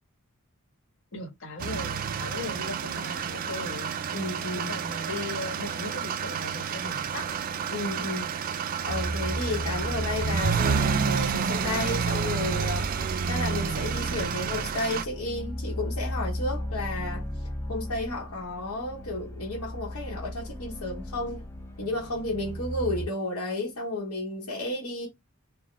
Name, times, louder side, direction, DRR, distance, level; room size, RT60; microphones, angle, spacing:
voice 1, 1.1-3.9 4.5-7.4, left 2 dB, 60° left, 1.3 m, -38 dB
sound 1, 1.6-15.0, right 6 dB, 40° right, 0.3 m, -30 dB
voice 2, 4.1-4.8 7.7-8.6 8.8-12.9 13.3-17.3 17.7-21.5 21.8-25.1, left 2 dB, 80° left, 1.0 m, -32 dB
sound 2, 8.8-23.1, equal, 10° left, 1.3 m, -36 dB
3.9 x 2.1 x 3.2 m
head